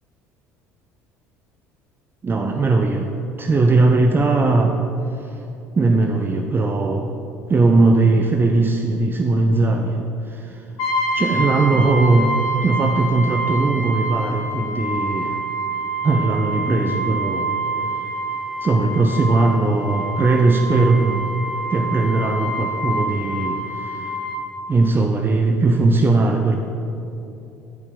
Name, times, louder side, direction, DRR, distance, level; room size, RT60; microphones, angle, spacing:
voice 1, 2.2-3.1 3.4-4.8 5.1-5.4 5.7-7.1 7.5-10.7 11.1-15.4 16.0-17.5 18.6-21.3 21.7-24.2 24.7-26.6, right 3 dB, 25° right, 3 dB, 0.7 m, -19 dB
Brass instrument, 10.8-24.4, right 1 dB, 50° left, 2.2 m, -26 dB
9.7 x 5.3 x 6.8 m, 2.9 s
figure-of-eight pair, 60°, 8 cm